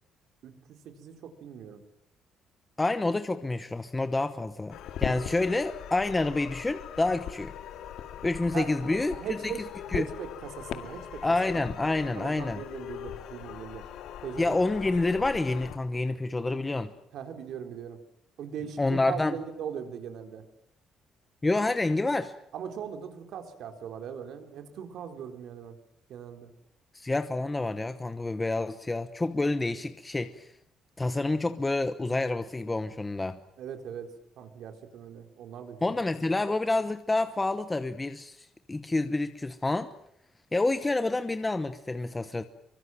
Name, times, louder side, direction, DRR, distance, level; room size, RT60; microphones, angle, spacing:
voice 1, 0.4-1.8 8.5-11.2 11.5-11.7 12.2-13.8 14.2-14.6 17.1-18.0 18.4-20.4 22.5-25.8 26.1-26.5 33.6-34.1 34.4-36.0, right 8 dB, 65° right, 6 dB, 4.0 m, -40 dB
voice 2, 2.8-7.5 8.2-9.2 9.4-9.5 9.9-10.1 11.2-12.6 14.4-16.9 18.8-19.3 21.4-22.3 26.9-30.5 31.0-33.4 35.8-39.9 40.5-42.4, left 2 dB, 10° left, 9 dB, 1.0 m, -28 dB
sound 1, 4.7-15.8, left 10 dB, 80° left, 2.2 m, -40 dB
26.5 x 24.0 x 7.7 m, 0.71 s
cardioid pair, 165°, 0 cm